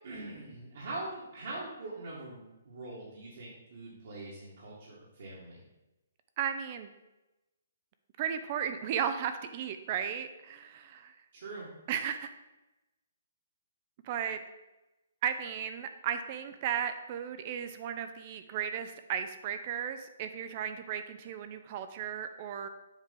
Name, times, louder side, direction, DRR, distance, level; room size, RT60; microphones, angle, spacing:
voice 1, 0.0-5.6 11.3-11.7, right 2 dB, 60° right, -6 dB, 1.8 m, -43 dB
voice 2, 6.4-6.9 8.2-11.2 11.9-12.3 14.0-14.4 15.2-22.7, right 8 dB, 35° right, 9 dB, 0.4 m, -35 dB
7.2 x 3.3 x 5.3 m, 1.0 s
hypercardioid pair, 150°, 0 cm